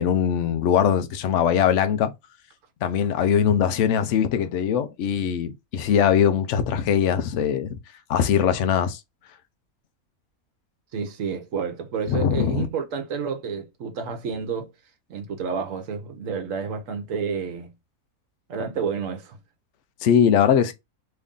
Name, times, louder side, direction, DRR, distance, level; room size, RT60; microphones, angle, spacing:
voice 1, 0.0-2.1 2.8-7.8 8.1-9.0 12.1-12.7 20.0-20.7, left 8 dB, 65° left, 0.8 m, -21 dB
voice 2, 10.9-14.7 15.1-17.7 18.5-19.4, right 6 dB, 65° right, 1.1 m, -30 dB
3.2 x 2.6 x 3.6 m
omnidirectional pair, 1.5 m